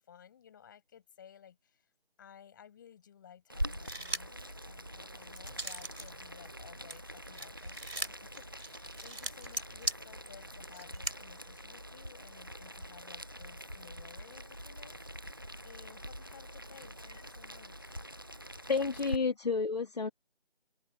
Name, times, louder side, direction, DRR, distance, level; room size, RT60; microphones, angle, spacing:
voice 1, 0.0-1.9 2.2-15.0 15.6-17.9, left 8 dB, 20° left, 7.1 m, -56 dB
Boiling, 3.5-19.2, equal, 20° right, 0.7 m, -44 dB
sound 1, 3.7-4.4 4.9-6.1 6.4-11.2, right 1 dB, 80° right, 6.2 m, -39 dB
voice 2, 18.7-20.1, left 4 dB, 40° left, 2.7 m, -30 dB
figure-of-eight pair, 165°, 31 cm